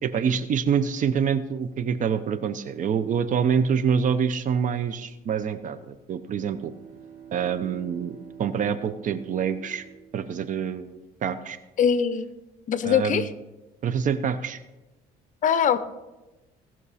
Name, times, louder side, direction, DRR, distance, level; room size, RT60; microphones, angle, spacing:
voice 1, 0.0-6.7 7.3-8.1 8.4-9.8 10.1-11.6 12.8-13.3 13.8-14.6, right 7 dB, 50° right, 12 dB, 0.7 m, -26 dB
Bowed string instrument, 6.2-10.8, right 8 dB, 70° right, 3.0 m, -47 dB
voice 2, 11.8-12.3 12.7-13.3 15.4-15.8, left 8 dB, 50° left, 13 dB, 0.7 m, -22 dB
17.5 x 6.1 x 4.2 m, 1.0 s
cardioid pair, 110°, 17 cm